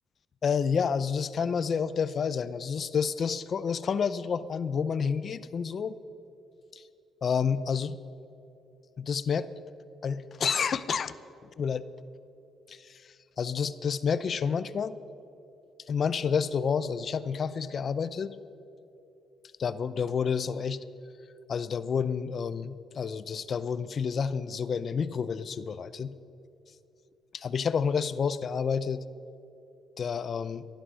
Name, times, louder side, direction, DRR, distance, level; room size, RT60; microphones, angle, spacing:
voice 1, 0.4-6.0 6.7-6.8 7.2-8.0 9.0-9.5 10.0-11.1 11.6-11.9 12.7-15.0 15.9-18.4 19.6-20.8 21.5-26.1 27.3-29.0 30.0-30.7, left 6 dB, 50° left, 15 dB, 0.6 m, -29 dB
16.5 x 11.5 x 6.3 m, 2.8 s
cardioid pair, 90°, 0 cm